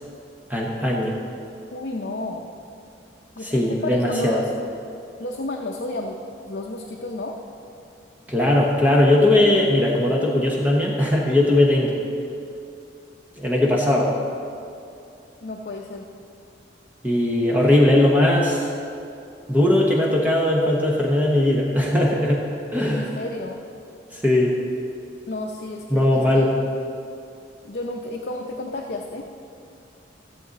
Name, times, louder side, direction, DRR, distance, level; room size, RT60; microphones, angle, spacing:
voice 1, 0.5-1.1 3.4-4.4 8.3-12.0 13.4-14.1 17.0-18.7 19.5-22.4 22.7-23.1 24.1-24.5 25.9-26.5, left 1 dB, 10° right, -3 dB, 1.0 m, -19 dB
voice 2, 1.7-2.5 3.4-4.5 5.2-6.2 6.5-7.4 15.4-16.1 22.9-23.6 25.3-26.5 27.6-29.3, left 2 dB, 60° left, 1 dB, 0.6 m, -31 dB
14.5 x 7.8 x 4.1 m, 2.6 s
head